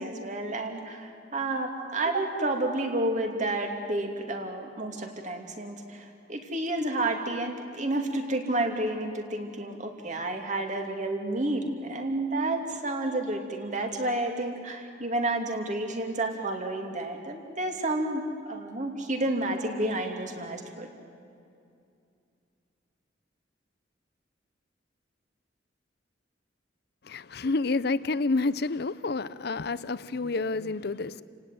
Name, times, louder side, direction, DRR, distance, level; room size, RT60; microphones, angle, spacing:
voice 1, 0.0-20.9, right 2 dB, 40° right, 2.8 m, -30 dB
voice 2, 27.0-31.2, left 3 dB, 60° left, 0.7 m, -29 dB
30.0 x 17.5 x 9.3 m
head